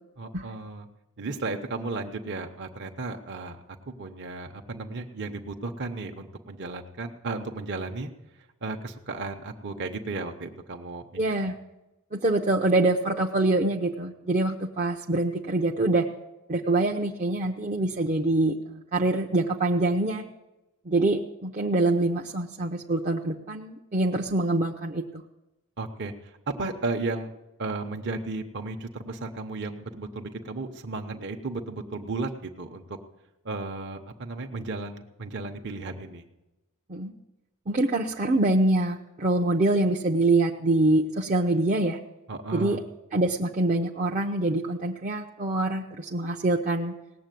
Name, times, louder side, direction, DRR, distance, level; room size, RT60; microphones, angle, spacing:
voice 1, 0.2-0.9 1.2-3.6 3.9-8.1 8.6-11.1 25.8-27.3 27.6-33.0 33.4-36.2 42.3-42.8, right 3 dB, 50° right, 3 dB, 1.0 m, -34 dB
voice 2, 11.2-11.5 12.1-16.1 16.5-20.2 20.9-25.2 36.9-37.1 37.7-42.0 42.5-42.8 43.1-47.0, right 2 dB, 35° right, 0 dB, 0.7 m, -25 dB
18.0 x 7.5 x 9.2 m, 1.0 s
head